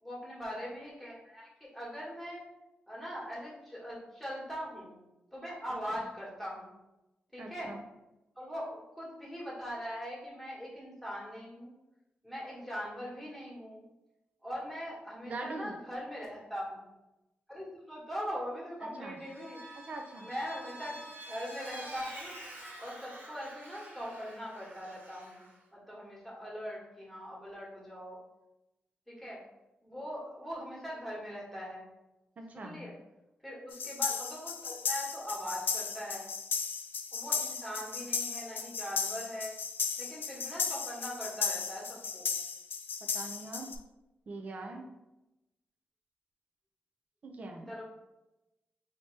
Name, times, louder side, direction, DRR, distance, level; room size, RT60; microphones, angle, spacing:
voice 1, 0.0-2.4 2.9-5.0 5.3-6.7 7.3-7.7 8.4-11.7 12.2-13.8 14.4-16.9 17.5-19.8 20.2-21.0 21.3-22.3 22.8-28.2 29.1-29.4 29.8-31.8 32.5-32.9 33.4-36.3 37.1-39.5 40.0-42.3 47.6-47.8, equal, 5° left, -5 dB, 1.4 m, -41 dB
voice 2, 7.4-7.8 15.2-15.7 18.8-19.2 19.7-20.3 32.4-32.8 43.1-43.7 44.3-44.9 47.2-47.7, right 2 dB, 45° right, 3 dB, 0.5 m, -42 dB
Vehicle, 19.2-25.5, right 1 dB, 85° right, 1.1 m, -48 dB
sound 1, 33.7-43.7, left 6 dB, 70° left, 0.4 m, -35 dB
4.9 x 2.8 x 3.3 m, 0.96 s
wide cardioid pair, 140°, 4 cm